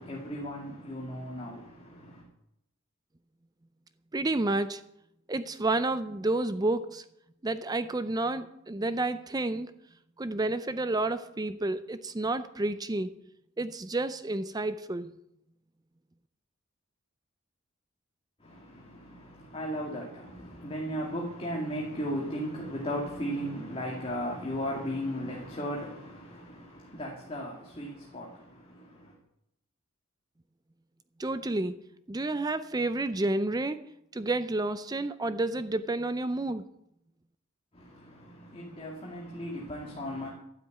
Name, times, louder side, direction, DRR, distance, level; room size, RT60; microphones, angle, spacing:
voice 1, 0.0-2.2 18.4-29.1 37.7-40.3, equal, 30° left, -2 dB, 2.3 m, -36 dB
voice 2, 4.1-4.8 5.3-7.0 7.4-9.7 10.2-13.1 13.6-15.1 31.2-31.8 32.1-33.8 34.1-36.7, right 2 dB, 20° right, 12 dB, 0.5 m, -30 dB
12.5 x 7.9 x 9.4 m, 0.78 s
head